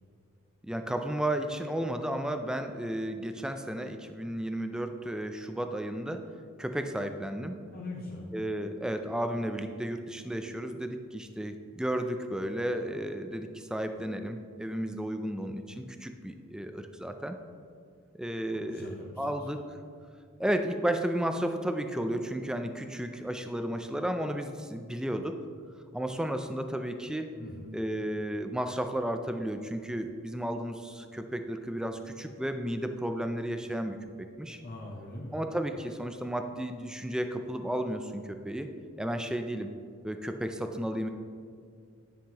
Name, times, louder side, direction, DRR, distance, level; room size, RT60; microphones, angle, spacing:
voice 1, 0.6-6.2 6.6-7.6 8.3-17.4 18.2-19.6 20.4-25.4 25.9-27.3 27.7-34.6 35.3-38.7 39.0-39.7 40.0-41.1, right 1 dB, 5° right, 7 dB, 0.3 m, -33 dB
voice 2, 7.7-8.3 18.5-19.5 27.4-27.7 34.6-35.3, left 2 dB, 45° left, -3 dB, 0.8 m, -42 dB
10.0 x 5.6 x 2.9 m, 2.2 s
head